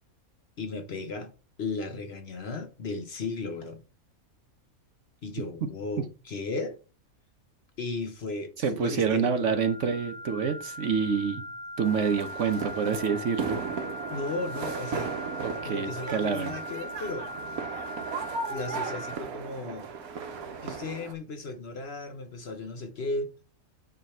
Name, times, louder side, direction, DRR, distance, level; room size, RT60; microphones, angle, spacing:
voice 1, 0.6-1.3 1.6-3.8 5.2-6.8 7.8-9.5 14.1-15.1 15.6-17.3 18.5-19.9 20.6-23.3, left 3 dB, 50° left, 1.0 m, -35 dB
voice 2, 8.6-11.4 11.8-13.6 15.4-16.5, right 6 dB, 60° right, 1.1 m, -27 dB
sound 1, 9.2-19.1, left 1 dB, 5° left, 1.0 m, -40 dB
sound 2, 11.8-21.1, right 5 dB, 80° right, 1.5 m, -36 dB
9.3 x 3.4 x 4.3 m
omnidirectional pair, 1.5 m